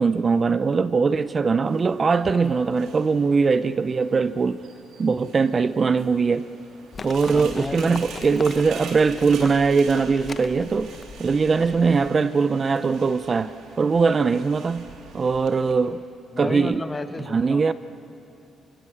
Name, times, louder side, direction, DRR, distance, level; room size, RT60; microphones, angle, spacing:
voice 1, 0.0-4.6 5.0-6.5 7.0-10.9 11.2-14.9 15.1-16.0 16.4-16.8 17.3-17.7, right 5 dB, 35° right, 13 dB, 0.6 m, -21 dB
sound 1, 1.6-15.7, right 5 dB, 80° right, 3.0 m, -44 dB
Livestock farm animals working animals, 6.9-12.1, left 5 dB, 40° left, 0.9 m, -40 dB
voice 2, 7.3-8.0 11.6-11.7 16.3-17.7, left 3 dB, 25° left, 8 dB, 1.5 m, -32 dB
29.0 x 25.0 x 7.1 m, 2.8 s
cardioid pair, 90°, 0 cm